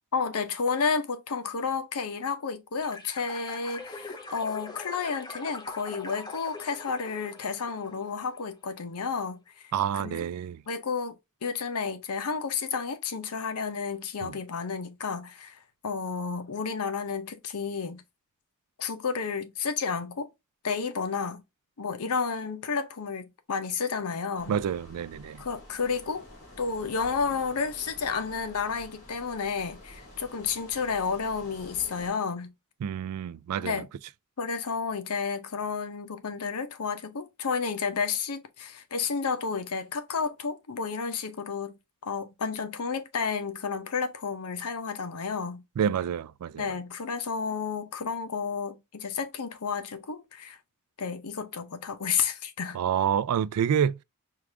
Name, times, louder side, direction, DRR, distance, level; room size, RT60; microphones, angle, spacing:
voice 1, 0.1-10.2 10.7-11.1 11.4-18.0 18.8-20.3 20.6-21.4 21.8-24.5 25.4-26.2 26.6-32.5 33.6-33.9 34.4-45.6 46.6-50.6 51.0-52.8, left 5 dB, 85° left, 0.7 m, -31 dB
sound 1, 2.8-8.5, left 3 dB, 20° left, 0.6 m, -43 dB
voice 2, 9.7-10.6 14.2-14.4 24.5-25.4 32.8-33.8 45.8-46.7 52.7-54.0, right 8 dB, 90° right, 0.3 m, -28 dB
sound 2, 24.3-32.1, left 2 dB, 55° left, 2.6 m, -47 dB
4.7 x 2.5 x 3.3 m
head